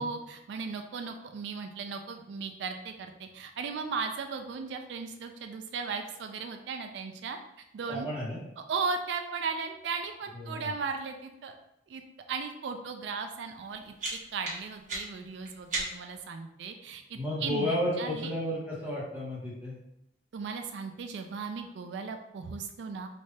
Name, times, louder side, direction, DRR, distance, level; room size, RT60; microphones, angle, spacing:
voice 1, 0.0-7.4 7.7-8.1 8.7-11.5 11.9-12.0 12.3-18.3 20.3-23.1, right 5 dB, 85° right, 5 dB, 0.3 m, -36 dB
voice 2, 7.9-8.4 10.3-10.7 17.1-19.8, left 1 dB, 10° right, -8 dB, 1.3 m, -32 dB
sound 1, 13.5-16.2, right 2 dB, 50° right, 1.2 m, -38 dB
3.2 x 2.7 x 3.2 m, 0.84 s
head